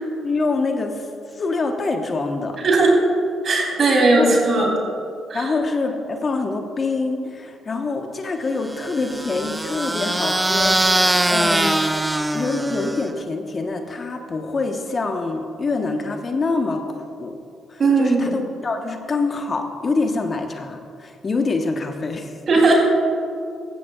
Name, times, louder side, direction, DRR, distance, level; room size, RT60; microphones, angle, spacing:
voice 1, 0.2-2.6 3.9-4.4 5.3-11.8 12.3-17.4 17.7-22.4, left 3 dB, 40° left, 4 dB, 1.2 m, -25 dB
voice 2, 2.6-3.0 3.4-4.7 5.3-5.4 17.8-18.3 22.5-22.8, right 3 dB, 50° right, -1 dB, 3.3 m, -17 dB
sound 1, 8.7-13.2, right 1 dB, 15° right, 0.7 m, -22 dB
16.0 x 13.5 x 2.4 m, 2.4 s
hypercardioid pair, 45°, 0 cm